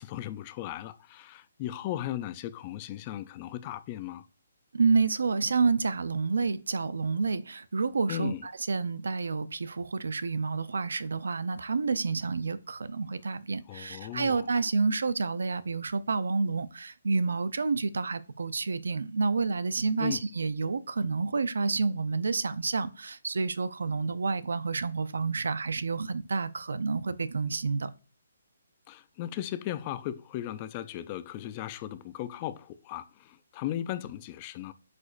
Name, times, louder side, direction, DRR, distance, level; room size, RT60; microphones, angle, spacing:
voice 1, 0.0-4.3 8.1-8.5 13.7-14.5 20.0-20.2 28.9-34.7, left 12 dB, 20° left, 0.3 m, -37 dB
voice 2, 4.7-27.9, right 4 dB, 80° right, 0.5 m, -29 dB
8.1 x 5.0 x 2.5 m
hypercardioid pair, 170°, 0 cm